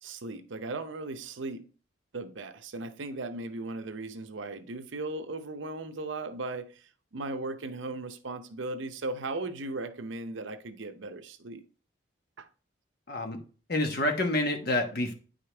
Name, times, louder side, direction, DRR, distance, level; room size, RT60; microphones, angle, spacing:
voice 1, 0.0-1.6 2.1-6.7 7.1-11.6 12.4-12.5, right 2 dB, 75° right, 0.7 m, -37 dB
voice 2, 13.1-13.4 13.7-15.1, left 1 dB, 50° left, 1.2 m, -28 dB
9.4 x 5.1 x 3.3 m
head